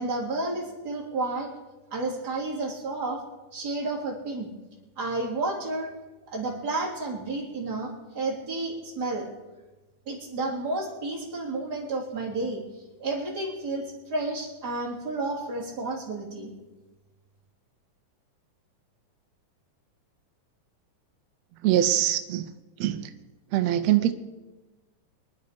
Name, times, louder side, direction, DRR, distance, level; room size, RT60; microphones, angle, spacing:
voice 1, 0.0-1.5 1.9-3.2 3.5-4.5 5.0-5.9 6.3-9.3 10.1-12.6 13.0-16.5, right 2 dB, 30° right, -3 dB, 3.7 m, -31 dB
voice 2, 21.6-22.5 22.8-23.1 23.5-24.1, right 12 dB, 75° right, 8 dB, 1.7 m, -23 dB
24.0 x 10.5 x 5.1 m, 1.1 s
omnidirectional pair, 3.6 m